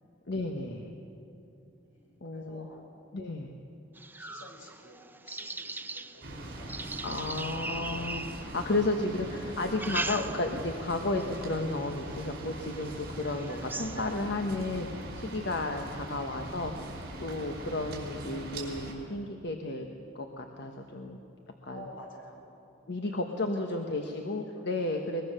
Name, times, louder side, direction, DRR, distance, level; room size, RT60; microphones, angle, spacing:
voice 1, 0.3-0.9 2.2-2.7 3.1-3.6 7.0-16.9 17.2-19.9 20.1-21.2 21.6-21.8 22.9-25.2, left 2 dB, 60° left, 4 dB, 1.2 m, -33 dB
voice 2, 1.8-2.8 4.1-7.9 9.4-9.6 13.6-14.1 21.6-22.5 23.4-24.7, left 1 dB, 80° left, -1 dB, 6.4 m, -51 dB
sound 1, 4.0-9.0 9.6-10.7 11.2-11.5 12.1-12.2 12.7-12.8 13.1-14.2, right 3 dB, 10° right, 0.6 m, -39 dB
sound 2, 6.2-18.9, right 1 dB, 55° right, 4.8 m, -41 dB
22.0 x 21.0 x 6.7 m, 2.8 s
head